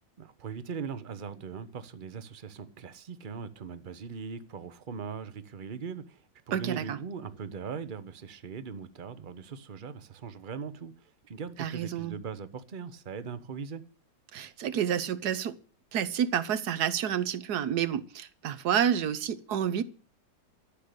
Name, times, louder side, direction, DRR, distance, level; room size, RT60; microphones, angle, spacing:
voice 1, 0.2-13.8, right 6 dB, 40° right, 0.8 m, -40 dB
voice 2, 6.5-7.0 11.6-12.1 14.3-15.5 15.9-19.8, right 9 dB, 60° right, 1.4 m, -29 dB
13.5 x 6.6 x 9.8 m
omnidirectional pair, 2.0 m